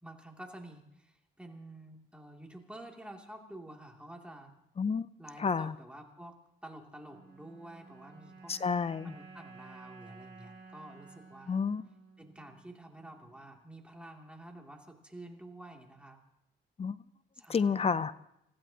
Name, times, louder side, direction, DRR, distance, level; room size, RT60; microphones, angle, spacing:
voice 1, 0.0-4.5 5.2-8.6 9.0-11.6 12.2-16.2 17.3-18.1, right 1 dB, 5° right, 0 dB, 2.8 m, -50 dB
voice 2, 4.8-5.1 5.4-5.7 8.5-9.1 11.5-11.8 16.8-17.0 17.5-18.3, left 5 dB, 30° left, 16 dB, 0.6 m, -30 dB
sound 1, 7.0-13.4, right 4 dB, 65° right, 5.7 m, -54 dB
28.5 x 15.0 x 2.9 m, 0.84 s
cardioid pair, 90°, 20 cm